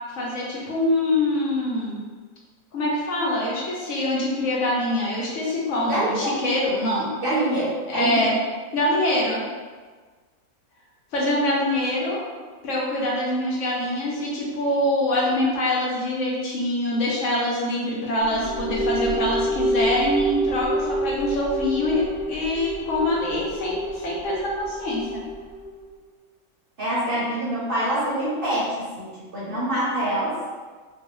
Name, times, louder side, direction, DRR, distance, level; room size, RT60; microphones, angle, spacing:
voice 1, 0.1-2.0 2.7-7.1 7.9-8.4 8.7-9.5 11.1-12.2 12.6-25.2, left 1 dB, 65° left, -4 dB, 0.9 m, -24 dB
voice 2, 5.9-6.3 7.2-8.3 26.8-30.4, right 1 dB, 50° right, -8 dB, 0.8 m, -25 dB
sound 1, 18.2-25.8, right 1 dB, 10° left, 0.9 m, -28 dB
2.6 x 2.3 x 2.9 m, 1.4 s
omnidirectional pair, 1.5 m